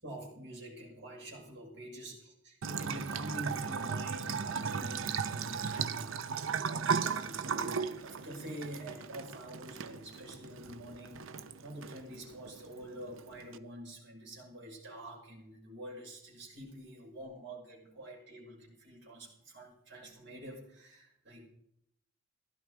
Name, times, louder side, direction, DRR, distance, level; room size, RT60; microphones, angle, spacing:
voice 1, 0.0-21.5, right 1 dB, 60° right, -3 dB, 5.9 m, -47 dB
Bathtub (filling or washing) / Trickle dribble, 2.6-13.6, right 6 dB, 85° right, 0.7 m, -37 dB
16.0 x 11.5 x 4.9 m, 0.75 s
head